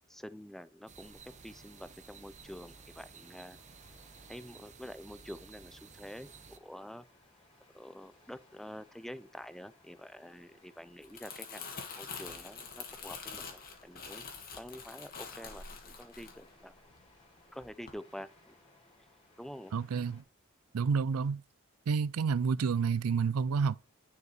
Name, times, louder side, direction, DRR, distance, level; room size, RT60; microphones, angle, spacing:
voice 1, 0.1-3.6 4.3-7.1 7.7-14.3 14.5-16.7 17.5-18.5 19.4-19.7, equal, ahead, 0.5 m, -47 dB
sound 1, 0.9-20.2, left 2 dB, 25° left, 2.8 m, -64 dB
sound 2, 0.9-6.6, right 5 dB, 35° right, 0.8 m, -54 dB
Crumpling crinkling, 10.9-17.3 17.6-17.9, left 5 dB, 45° left, 1.6 m, -46 dB
voice 2, 19.7-20.2 20.7-21.4 21.9-23.7, right 5 dB, 80° right, 0.4 m, -29 dB
9.6 x 4.9 x 4.6 m
head